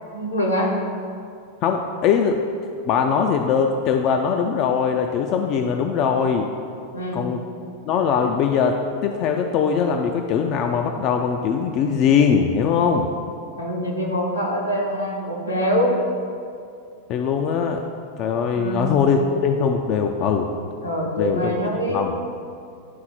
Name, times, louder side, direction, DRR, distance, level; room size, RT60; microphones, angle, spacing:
voice 1, 0.1-0.8 6.9-7.2 13.6-16.0 18.5-18.9 20.8-22.2, equal, 80° left, -2 dB, 1.1 m, -24 dB
voice 2, 1.6-2.4 2.9-6.5 7.1-7.4 7.9-8.8 9.0-13.1 17.1-17.8 18.2-20.5 21.2-21.5 21.9-22.2, left 6 dB, 40° left, 4 dB, 0.4 m, -21 dB
10.0 x 3.9 x 4.3 m, 2.4 s
figure-of-eight pair, 90°, 0 cm